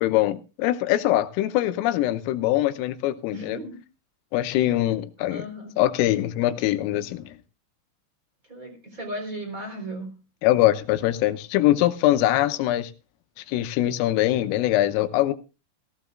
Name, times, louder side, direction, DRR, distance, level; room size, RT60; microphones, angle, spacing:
voice 1, 0.0-3.6 4.3-5.5 5.8-7.4 10.4-12.9 13.4-15.3, left 14 dB, 90° left, 3.5 m, -23 dB
voice 2, 3.3-3.7 4.7-4.8 5.3-5.7 8.4-10.2, right 1 dB, 20° right, 3.7 m, -36 dB
18.0 x 15.5 x 2.4 m
omnidirectional pair, 5.8 m